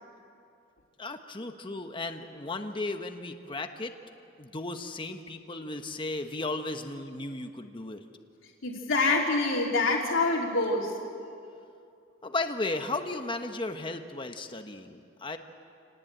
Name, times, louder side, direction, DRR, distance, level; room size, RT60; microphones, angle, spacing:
voice 1, 1.0-3.9 4.4-8.0 12.2-15.4, left 2 dB, 25° left, 6 dB, 1.1 m, -35 dB
voice 2, 8.6-10.9, left 3 dB, 75° left, -1 dB, 3.2 m, -26 dB
27.5 x 19.0 x 9.0 m, 2.5 s
head